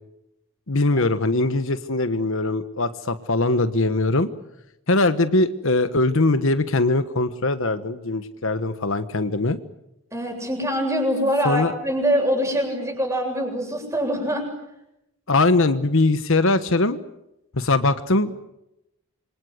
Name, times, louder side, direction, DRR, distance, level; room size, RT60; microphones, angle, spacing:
voice 1, 0.7-4.3 4.9-9.6 11.4-11.7 15.3-17.0 17.6-18.4, left 2 dB, 60° left, 11 dB, 1.2 m, -21 dB
voice 2, 10.1-14.5, equal, 15° right, 3 dB, 7.7 m, -24 dB
27.0 x 24.5 x 8.1 m, 0.87 s
head